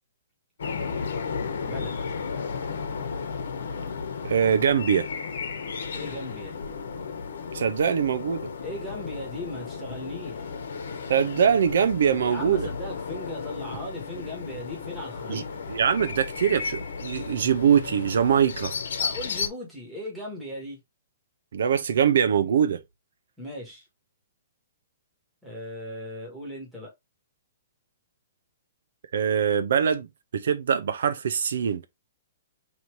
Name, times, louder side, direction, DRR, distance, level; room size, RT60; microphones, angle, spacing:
sound 1, 0.6-19.5, left 5 dB, 70° left, 1.0 m, -34 dB
voice 1, 4.2-5.1 7.5-8.5 11.1-12.7 15.3-15.4 15.7-18.7 21.5-22.8 29.1-30.1 30.3-31.8, right 8 dB, 65° right, 0.5 m, -23 dB
voice 2, 5.9-6.6 8.6-10.6 12.2-15.6 19.0-20.8 23.4-23.8 25.4-26.9, left 1 dB, ahead, 1.3 m, -38 dB
3.1 x 2.7 x 4.5 m
hypercardioid pair, 170°, 0 cm